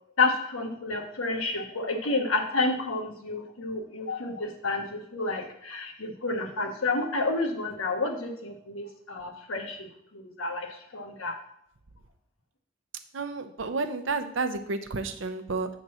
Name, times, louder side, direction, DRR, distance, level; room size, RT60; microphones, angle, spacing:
voice 1, 0.2-9.9 10.1-11.4, left 3 dB, 85° left, 3 dB, 1.2 m, -30 dB
voice 2, 13.1-15.7, right 3 dB, 65° right, 8 dB, 0.7 m, -31 dB
7.3 x 3.9 x 6.3 m, 0.70 s
head